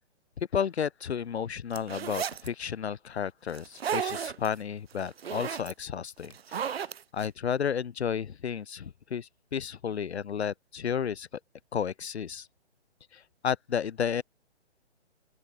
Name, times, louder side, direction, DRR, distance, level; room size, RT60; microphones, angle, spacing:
voice 1, 0.5-11.3 11.7-12.5 13.1-14.2, left 7 dB, 65° left, 2.2 m, -32 dB
sound 1, 1.7-2.5 3.5-4.5 4.9-5.7 6.2-7.3, right 8 dB, 60° right, 2.2 m, -33 dB
open air
hypercardioid pair, 145°, 35 cm